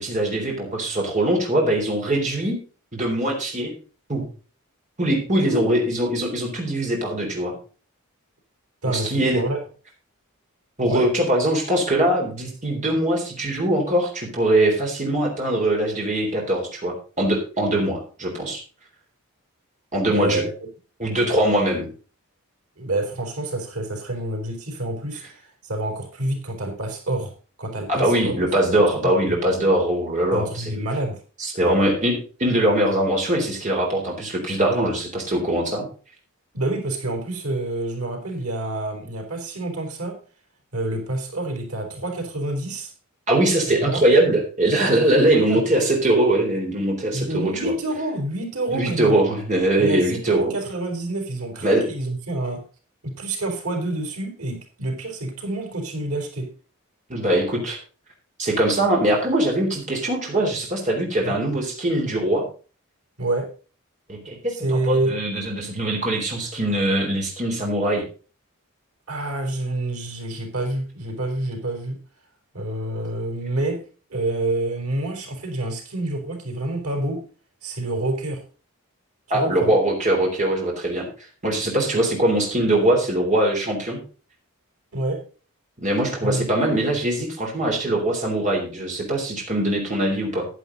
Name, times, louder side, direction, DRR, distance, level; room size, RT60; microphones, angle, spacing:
voice 1, 0.0-2.6 2.9-3.7 4.1-4.2 5.0-7.5 8.9-9.4 10.8-18.6 19.9-20.4 21.0-21.9 27.9-30.7 31.4-35.9 43.3-47.7 48.7-50.5 51.6-51.8 57.1-57.8 58.4-62.4 64.1-68.0 79.3-81.1 81.4-84.0 85.8-90.5, right 1 dB, 35° right, 0 dB, 3.8 m, -22 dB
voice 2, 8.8-9.6 10.9-11.1 20.1-20.5 22.8-27.3 27.6-28.4 28.7-28.8 29.3-29.4 30.3-31.2 36.5-40.2 40.7-42.9 43.8-44.0 45.2-45.7 47.1-49.2 49.8-52.6 53.0-56.5 61.2-61.4 63.2-63.5 64.5-65.2 69.1-72.0 72.5-73.8 74.1-77.2 77.6-78.4 79.3-79.7 81.9-82.1 84.9-85.2 86.2-86.6, right 2 dB, 85° right, 3 dB, 4.1 m, -27 dB
11.0 x 10.5 x 4.0 m, 0.36 s
head